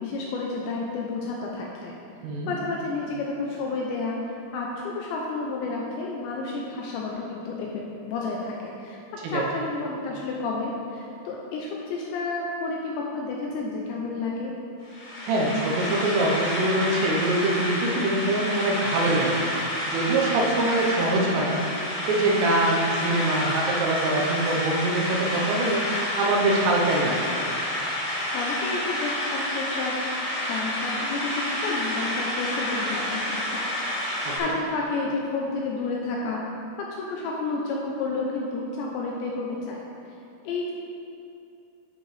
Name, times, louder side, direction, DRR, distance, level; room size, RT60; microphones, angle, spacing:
voice 1, 0.0-1.9 2.5-9.0 9.3-14.5 28.3-33.8 34.0-36.4 36.8-39.8 40.4-40.7, left 3 dB, 80° left, -2 dB, 2.6 m, -31 dB
sound 1, 14.8-34.4, left 1 dB, 50° left, 1.4 m, -29 dB
voice 2, 15.3-19.4 19.9-21.6 22.1-25.8 26.2-27.3 34.3-34.5, right 2 dB, 85° right, -2 dB, 3.6 m, -24 dB
10.5 x 6.4 x 3.3 m, 2.7 s
omnidirectional pair, 5.6 m